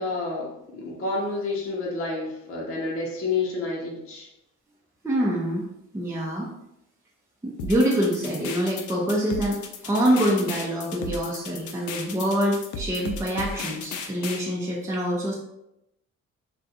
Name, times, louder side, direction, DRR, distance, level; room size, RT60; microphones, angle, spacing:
voice 1, 0.0-4.3, left 3 dB, 45° left, -3 dB, 0.9 m, -29 dB
voice 2, 5.0-5.6 5.9-6.5 7.4-15.3, equal, 10° right, -4 dB, 0.7 m, -25 dB
sound 1, 7.6-14.4, left 4 dB, 75° left, 0.5 m, -35 dB
2.5 x 2.4 x 4.1 m, 0.82 s
cardioid pair, 90°, 30 cm